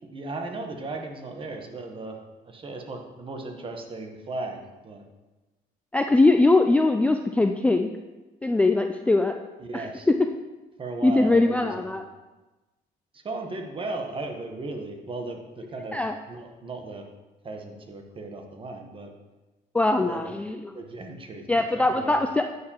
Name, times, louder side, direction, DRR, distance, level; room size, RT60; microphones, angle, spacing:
voice 1, 0.1-2.2 2.5-5.1 9.6-10.1 10.8-12.1 13.1-16.0 16.3-17.1 17.4-19.1 20.0-20.3 20.7-22.2, right 2 dB, 30° right, 4 dB, 1.1 m, -36 dB
voice 2, 5.9-7.9 8.4-9.3 9.7-9.9 11.0-12.0 15.9-16.1 19.7-20.8 21.5-22.5, left 2 dB, 10° left, 5 dB, 0.3 m, -21 dB
9.4 x 6.6 x 2.9 m, 1.1 s
cardioid pair, 110°, 17 cm